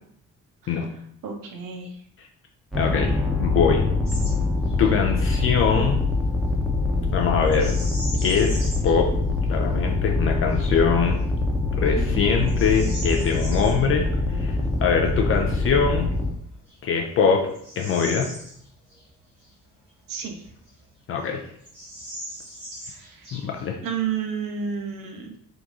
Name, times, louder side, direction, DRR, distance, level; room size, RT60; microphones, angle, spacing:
voice 1, 1.2-2.0 11.9-12.5 20.1-20.4 22.9-23.3 23.8-25.4, right 7 dB, 45° right, 3 dB, 0.7 m, -31 dB
sound 1, 2.7-16.3, left 3 dB, ahead, 0.7 m, -24 dB
voice 2, 2.8-3.9 4.8-6.0 7.1-7.8 8.2-9.1 9.5-11.2 11.8-14.1 14.3-16.1 16.8-17.5 17.8-18.3 21.1-21.4 23.3-23.8, left 6 dB, 30° left, 1 dB, 0.4 m, -23 dB
Bird vocalization bird call bird song, 4.1-4.4 4.7-4.9 7.5-9.0 9.5-9.6 10.2-10.6 11.2-11.3 11.9-13.8 15.9-16.0 16.6-19.0 19.4-19.5 20.2-21.0 21.2-21.3 21.6-23.7, equal, 85° right, 1.3 m, -39 dB
3.8 x 2.3 x 2.5 m, 0.67 s
figure-of-eight pair, 40°, 47 cm